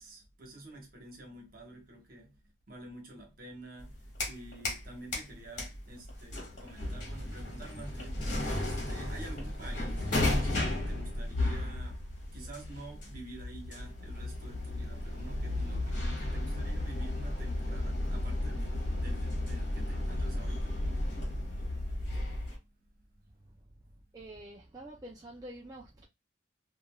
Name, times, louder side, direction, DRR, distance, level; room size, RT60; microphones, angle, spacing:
voice 1, 0.0-2.3 2.7-12.0 12.3-20.8, right 1 dB, 50° right, 1.2 m, -49 dB
sound 1, 3.8-4.9 5.1-22.6, left 1 dB, 40° left, 1.4 m, -34 dB
voice 2, 24.1-26.1, right 1 dB, 20° right, 0.4 m, -47 dB
3.3 x 2.5 x 2.2 m
head